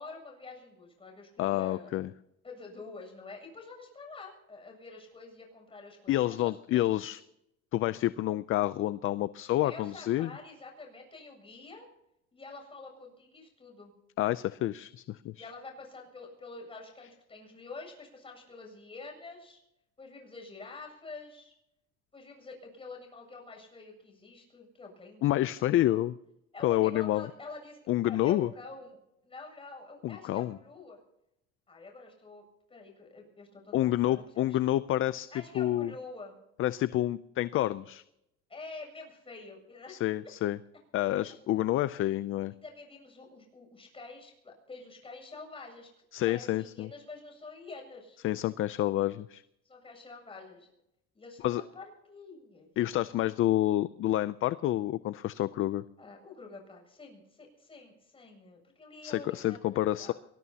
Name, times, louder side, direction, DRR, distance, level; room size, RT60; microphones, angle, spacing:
voice 1, 0.0-1.9 2.4-6.8 9.6-11.8 12.3-13.9 15.4-19.6 20.0-21.5 22.1-25.2 25.8-26.0 26.5-27.8 28.0-29.0 29.2-31.0 31.7-32.4 32.7-34.6 35.3-36.4 38.5-40.0 42.6-45.9 46.2-48.2 49.7-50.7 51.1-52.7 56.0-60.1, left 3 dB, 20° left, 1 dB, 7.5 m, -47 dB
voice 2, 1.4-2.1 6.1-7.2 7.7-10.3 14.2-15.5 25.2-26.2 26.6-27.3 27.9-28.5 30.0-30.6 33.7-35.3 35.5-35.9 36.6-38.0 39.9-40.6 40.9-42.5 46.1-46.9 48.2-49.4 51.4-51.6 52.8-55.8 59.0-60.1, left 14 dB, 45° left, 15 dB, 0.5 m, -28 dB
23.5 x 20.0 x 2.9 m, 0.83 s
cardioid pair, 125°, 29 cm